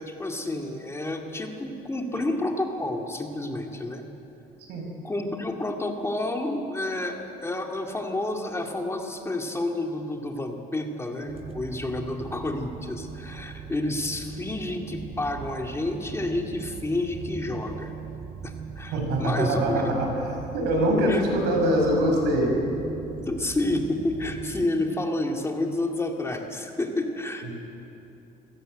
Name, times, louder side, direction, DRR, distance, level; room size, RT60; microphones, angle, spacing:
voice 1, 0.0-4.0 5.0-17.9 18.4-20.0 21.1-21.2 23.2-27.5, left 2 dB, 15° left, 2 dB, 2.3 m, -30 dB
sound 1, 11.2-24.6, right 6 dB, 35° right, 1.2 m, -40 dB
voice 2, 18.9-20.2 20.5-22.5 27.4-27.5, right 1 dB, 85° right, 1 dB, 6.4 m, -23 dB
26.0 x 17.0 x 8.0 m, 2.9 s
cardioid pair, 110°, 17 cm